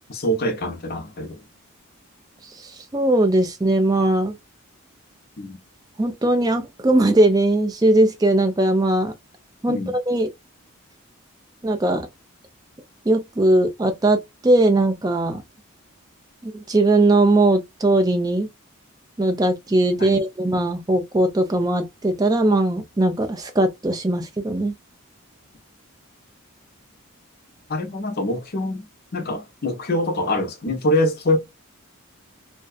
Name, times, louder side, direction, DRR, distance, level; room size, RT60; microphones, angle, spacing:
voice 1, 0.1-1.4 5.4-5.6 9.7-10.0 20.0-20.2 27.7-28.8 29.1-31.4, left 1 dB, 45° left, 0.6 m, -24 dB
voice 2, 2.9-4.4 6.0-9.1 9.6-10.3 11.6-12.1 13.1-15.4 16.4-18.5 19.2-24.7, right 2 dB, 15° right, 0.4 m, -19 dB
2.5 x 2.3 x 2.3 m
head